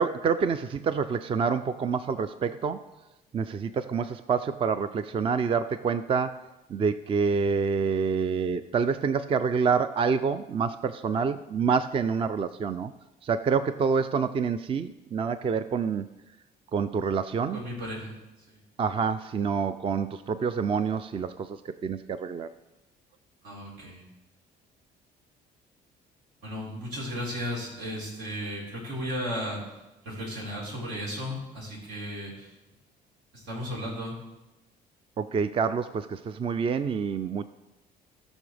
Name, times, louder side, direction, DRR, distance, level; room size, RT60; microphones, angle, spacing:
voice 1, 0.0-2.8 3.3-6.4 6.7-12.9 13.2-16.1 16.7-17.6 18.8-22.5 35.2-37.4, right 5 dB, 30° right, 12 dB, 0.4 m, -27 dB
voice 2, 17.5-18.2 18.5-18.6 23.4-24.0 26.4-29.6 30.0-32.5 33.3-34.2, equal, 85° right, -5 dB, 4.4 m, -35 dB
18.0 x 6.2 x 3.4 m, 0.98 s
cardioid pair, 110°, 17 cm